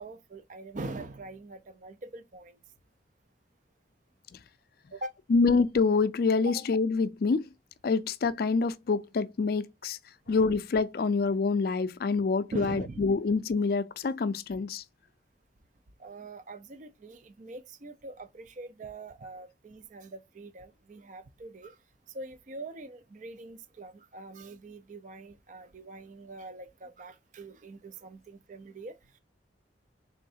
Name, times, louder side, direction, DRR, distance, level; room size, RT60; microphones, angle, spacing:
voice 1, 0.0-2.6 4.9-5.1 6.5-6.6 12.5-13.0 16.0-21.8 22.1-29.0, right 2 dB, 45° right, 0.4 m, -43 dB
voice 2, 5.3-7.5 7.8-10.0 10.3-14.8, left 4 dB, 55° left, 0.4 m, -26 dB
3.7 x 3.2 x 2.7 m
head